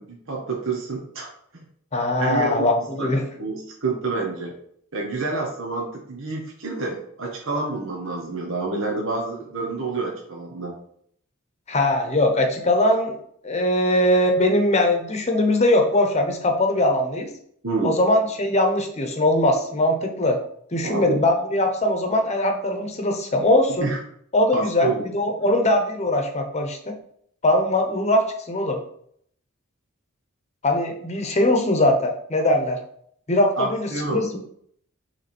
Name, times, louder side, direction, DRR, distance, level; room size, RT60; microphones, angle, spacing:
voice 1, 0.0-1.6 2.2-2.7 3.0-4.5 4.9-10.7 17.6-18.0 20.8-21.2 23.8-24.0 24.5-25.0 33.6-34.4, right 3 dB, 65° right, -1 dB, 1.2 m, -28 dB
voice 2, 1.9-3.2 11.7-13.2 13.4-17.3 17.8-20.4 20.7-23.9 24.3-27.0 27.4-28.8 30.6-32.8 33.3-34.4, left 1 dB, 30° left, 4 dB, 1.0 m, -21 dB
6.5 x 3.4 x 4.4 m, 0.66 s
head